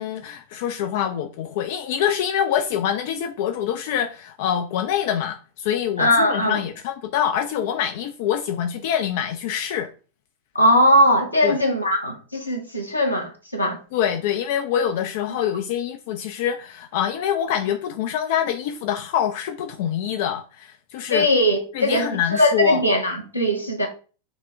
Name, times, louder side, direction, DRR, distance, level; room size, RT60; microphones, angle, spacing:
voice 1, 0.0-9.9 11.4-11.6 13.9-21.3 21.7-22.8, left 9 dB, 50° left, 0.4 m, -25 dB
voice 2, 6.0-6.6 10.5-13.8 21.1-22.1 22.3-23.9, equal, 85° left, 1.0 m, -20 dB
5.9 x 2.2 x 3.5 m
figure-of-eight pair, 90°, 0 cm